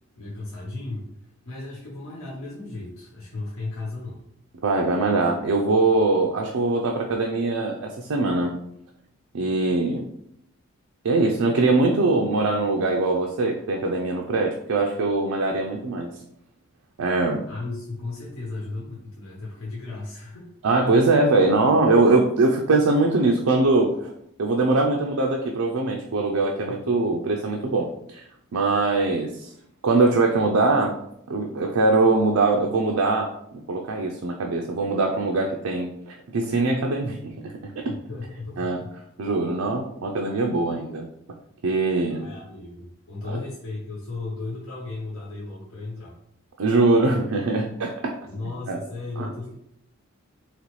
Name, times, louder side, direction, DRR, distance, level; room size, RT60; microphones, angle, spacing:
voice 1, 0.2-1.1 1.4-4.2 17.5-20.5 37.9-38.9 42.1-46.1 48.2-49.5, left 2 dB, 75° left, -6 dB, 1.1 m, -35 dB
voice 2, 4.6-8.5 9.3-10.1 11.0-16.1 17.0-17.5 20.6-24.1 24.4-28.2 28.5-29.5 29.8-30.9 31.3-33.3 33.7-37.9 38.6-38.8 39.2-41.1 41.6-42.3 43.3-43.4 46.6-48.2 48.7-48.8 49.2-49.3, right 3 dB, 80° right, 1 dB, 0.5 m, -22 dB
4.1 x 3.0 x 3.1 m, 0.75 s
head